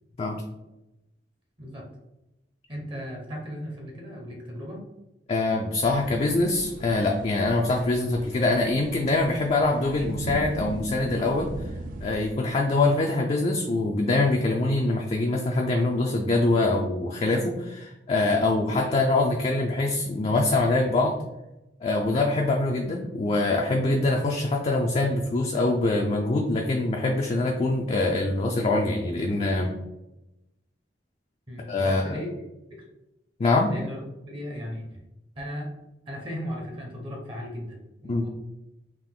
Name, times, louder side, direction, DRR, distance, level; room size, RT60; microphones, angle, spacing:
voice 1, 1.6-1.9 2.7-4.8 18.7-19.0 31.5-32.3 32.7-32.8 33.7-34.0 34.3-35.0 35.3-35.7 36.1-38.3, equal, 30° right, 0 dB, 0.7 m, -36 dB
voice 2, 5.3-11.5 12.0-21.2 21.8-29.7 31.7-32.2 33.4-33.7 38.0-38.3, left 2 dB, 35° left, 0 dB, 0.4 m, -24 dB
sound 1, 5.8-12.3, right 2 dB, 50° right, 0.4 m, -39 dB
3.7 x 2.5 x 3.6 m, 0.93 s
head